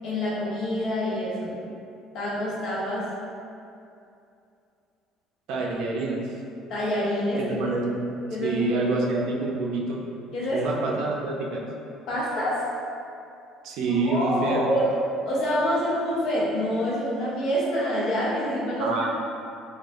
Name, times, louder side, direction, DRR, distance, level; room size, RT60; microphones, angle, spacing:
voice 1, 0.0-1.6 2.1-3.1 6.7-7.4 8.3-8.6 10.3-11.0 12.1-12.6 13.9-14.9 15.2-18.9, equal, 55° left, -6 dB, 0.9 m, -26 dB
voice 2, 5.5-6.2 7.4-8.2 8.4-10.0 10.5-11.7 13.6-14.7 18.8-19.1, right 3 dB, 65° right, -1 dB, 0.5 m, -27 dB
4.4 x 2.4 x 2.4 m, 2.6 s
cardioid pair, 150°, 0 cm